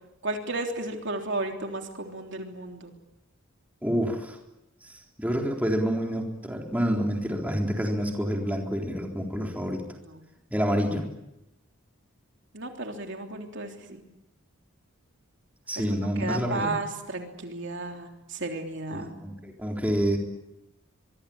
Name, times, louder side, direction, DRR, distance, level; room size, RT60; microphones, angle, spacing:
voice 1, 0.2-2.9 10.1-10.2 12.5-14.0 16.2-19.1, right 2 dB, 60° right, 3 dB, 3.4 m, -33 dB
voice 2, 3.8-4.4 4.9-9.8 10.5-11.1 15.7-16.7 18.9-20.2, equal, 5° right, 1 dB, 3.9 m, -28 dB
24.5 x 24.0 x 8.8 m, 0.90 s
head